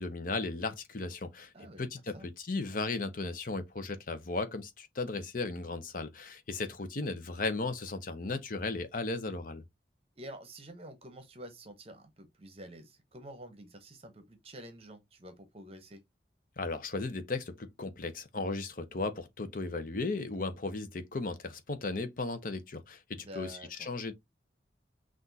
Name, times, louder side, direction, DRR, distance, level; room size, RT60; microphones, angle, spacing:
voice 1, 0.0-9.6 16.6-24.1, left 3 dB, 50° left, 0.7 m, -36 dB
voice 2, 1.5-1.9 2.1-2.3 10.2-16.0 23.1-23.9, right 1 dB, 35° right, 0.9 m, -48 dB
5.9 x 2.5 x 2.7 m
head